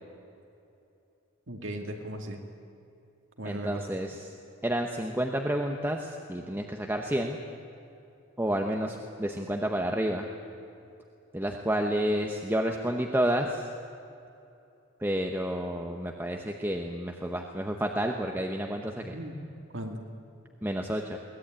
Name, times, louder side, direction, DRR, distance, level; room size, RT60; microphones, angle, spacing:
voice 1, 1.5-2.4 3.4-3.8 8.7-8.8 19.0-19.4 19.7-20.0, right 1 dB, 60° right, 3 dB, 2.4 m, -37 dB
voice 2, 3.4-4.3 4.6-7.4 8.4-10.3 11.3-13.7 15.0-19.2 20.6-21.2, right 1 dB, 10° right, 2 dB, 1.0 m, -30 dB
22.5 x 19.0 x 9.0 m, 2.7 s
head